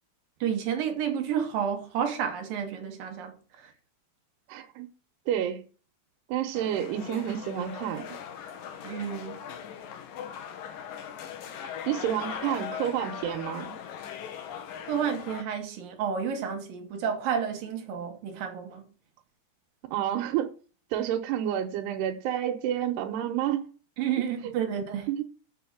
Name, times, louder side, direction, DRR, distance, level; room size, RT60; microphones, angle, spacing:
voice 1, 0.4-3.7 8.8-9.4 14.9-18.9 24.0-25.1, right 8 dB, 65° right, 2.6 m, -31 dB
voice 2, 4.5-4.9 5.3-5.6 6.3-8.1 11.9-13.8 19.9-20.5 20.9-23.7 24.2-24.3 25.1-25.2, right 11 dB, 85° right, 2.9 m, -29 dB
sound 1, 6.5-15.4, left 8 dB, 65° left, 2.6 m, -39 dB
7.1 x 6.8 x 7.3 m
omnidirectional pair, 4.7 m